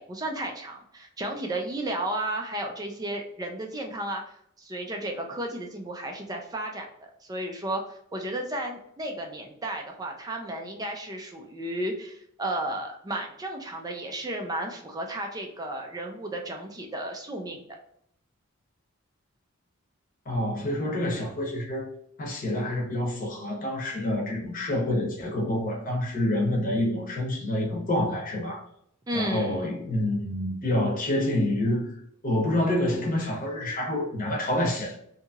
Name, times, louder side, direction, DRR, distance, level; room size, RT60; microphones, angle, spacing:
voice 1, 0.0-4.2 4.6-17.6 29.1-29.7, right 1 dB, 15° right, 0.4 m, -33 dB
voice 2, 20.2-21.9 22.2-28.6 29.1-31.9 32.2-35.0, left 1 dB, 40° left, 0.9 m, -27 dB
2.8 x 2.7 x 2.3 m
head